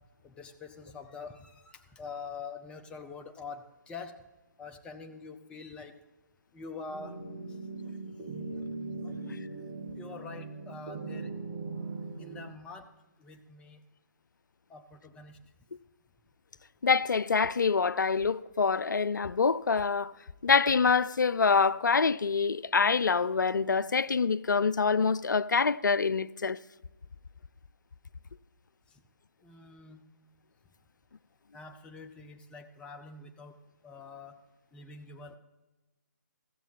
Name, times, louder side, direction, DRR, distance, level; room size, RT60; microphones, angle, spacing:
voice 1, 0.2-4.1 4.6-6.0 6.5-7.1 9.0-9.1 9.9-11.3 12.2-12.9 13.2-13.8 14.7-15.4 29.4-30.0 31.5-33.5 33.8-34.4 34.7-35.3, left 4 dB, 10° left, 0.7 m, -45 dB
sound 1, 6.9-12.4, right 3 dB, 30° right, 2.1 m, -40 dB
voice 2, 16.8-20.1 20.4-26.6, left 5 dB, 75° left, 0.4 m, -26 dB
15.0 x 7.2 x 5.6 m
figure-of-eight pair, 140°, 10 cm